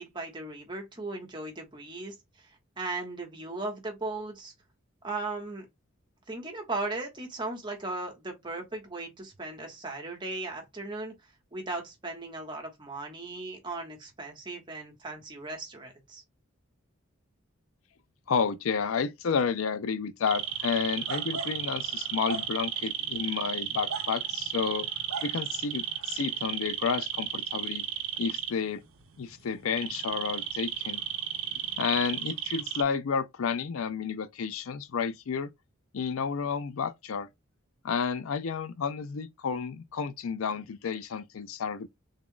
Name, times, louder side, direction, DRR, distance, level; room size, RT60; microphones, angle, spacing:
voice 1, 0.0-4.5 5.0-5.6 6.3-11.1 11.5-16.2, right 2 dB, 20° right, 1.1 m, -37 dB
voice 2, 18.3-24.9 25.2-27.8 28.2-28.8 29.2-31.0 31.7-35.5 35.9-37.3 37.8-41.9, left 6 dB, 80° left, 0.5 m, -31 dB
sound 1, 20.3-32.8, right 9 dB, 80° right, 0.7 m, -34 dB
3.6 x 2.3 x 3.7 m
head